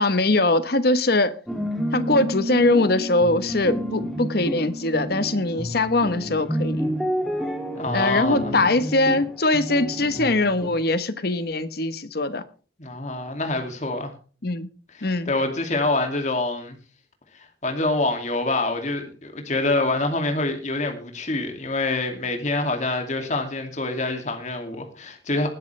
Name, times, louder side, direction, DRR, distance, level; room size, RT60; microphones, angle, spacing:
voice 1, 0.0-1.3 1.9-6.8 7.9-12.4 14.4-14.7 15.0-15.3, left 2 dB, 55° left, 1.2 m, -22 dB
sound 1, 1.5-10.7, equal, ahead, 2.7 m, -29 dB
voice 2, 7.7-8.6 12.8-14.1 14.9-16.8 17.3-25.5, left 2 dB, 40° left, 2.6 m, -26 dB
20.0 x 11.0 x 3.4 m
head